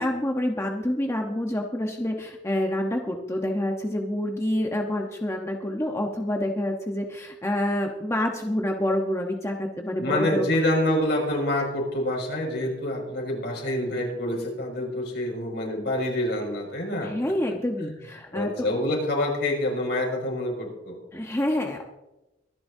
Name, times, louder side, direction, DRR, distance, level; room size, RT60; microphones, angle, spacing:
voice 1, 0.0-10.6 17.0-18.5 21.1-21.9, left 1 dB, 15° left, 2 dB, 1.0 m, -27 dB
voice 2, 10.0-17.3 17.8-18.0 18.3-21.0, left 1 dB, 65° left, 0 dB, 5.7 m, -27 dB
24.5 x 11.0 x 2.7 m, 1.0 s
head